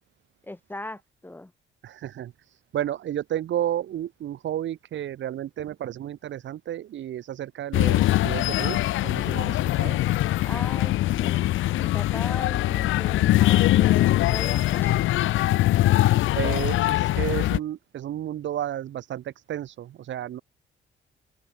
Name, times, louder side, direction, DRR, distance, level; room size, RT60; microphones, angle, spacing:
voice 1, 0.4-1.5 10.4-11.5 11.8-15.1, left 1 dB, 10° left, 1.7 m, -38 dB
voice 2, 1.8-2.3 2.7-8.8 9.0-10.0 16.4-20.4, right 11 dB, 70° right, 1.7 m, -32 dB
sound 1, 7.7-17.6, left 15 dB, 80° left, 0.8 m, -22 dB
cardioid pair, 90°, 20 cm